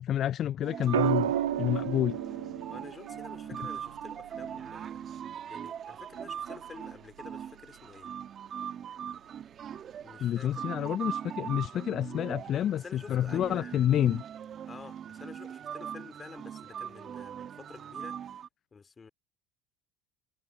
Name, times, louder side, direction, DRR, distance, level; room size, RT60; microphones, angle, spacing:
voice 1, 0.0-1.3 1.6-2.2 3.5-3.6 10.2-14.2, left 11 dB, 50° left, 0.4 m, -29 dB
sound 1, 0.6-18.5, right 9 dB, 45° right, 1.8 m, -41 dB
sound 2, 0.9-5.1 6.8-7.1, right 11 dB, 85° right, 0.4 m, -33 dB
voice 2, 2.7-5.0 5.4-8.1 10.0-10.5 10.8-11.0 12.7-13.7 14.7-18.2 18.7-19.1, left 5 dB, 25° left, 3.5 m, -50 dB
hypercardioid pair, 70°, 0 cm